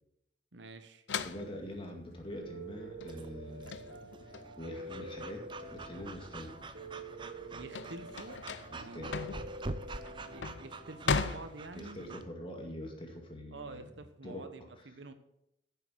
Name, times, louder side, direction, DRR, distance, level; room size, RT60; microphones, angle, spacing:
voice 1, 0.5-1.0 7.5-8.4 8.7-9.2 10.2-12.2 13.5-15.1, right 2 dB, 85° right, 9 dB, 1.1 m, -48 dB
sound 1, 1.1-6.1 6.5-12.1, left 4 dB, 80° left, 0.6 m, -38 dB
voice 2, 1.2-3.8 4.2-6.5 8.7-9.1 11.7-13.9 14.2-14.5, left 1 dB, 30° left, 2 dB, 2.1 m, -44 dB
Piano, 2.4-11.1, right 1 dB, 60° right, 2.9 m, -47 dB
Breathing / Dog, 3.1-12.2, right 3 dB, 25° right, 0.6 m, -47 dB
10.0 x 7.1 x 6.3 m, 0.80 s
head